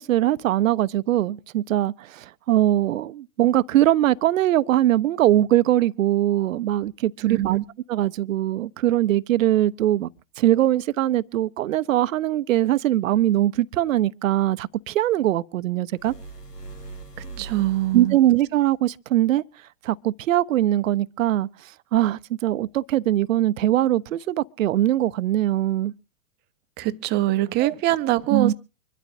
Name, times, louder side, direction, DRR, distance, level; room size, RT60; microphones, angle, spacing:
voice 1, 0.0-7.6 7.9-10.1 10.4-16.1 17.9-19.4 19.8-25.9 27.6-27.7 28.3-28.5, right 13 dB, 55° right, 0.7 m, -21 dB
voice 2, 7.2-7.6 17.2-18.2 26.8-28.5, right 16 dB, 20° right, 0.7 m, -23 dB
sound 1, 15.9-18.3, right 3 dB, 85° left, 2.1 m, -40 dB
25.0 x 12.5 x 2.6 m
figure-of-eight pair, 110°, 47 cm